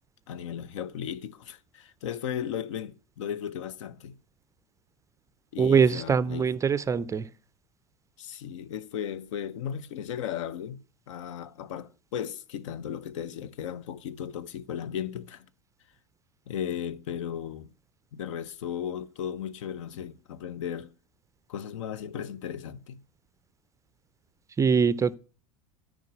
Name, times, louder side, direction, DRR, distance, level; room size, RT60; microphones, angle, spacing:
voice 1, 0.3-4.1 5.5-6.5 8.2-15.5 16.5-17.7 18.1-20.9 21.5-23.0, left 9 dB, 60° left, 0.7 m, -36 dB
voice 2, 5.6-7.3 24.6-25.2, right 6 dB, 15° right, 0.5 m, -23 dB
13.0 x 5.0 x 7.7 m
figure-of-eight pair, 80°, 18 cm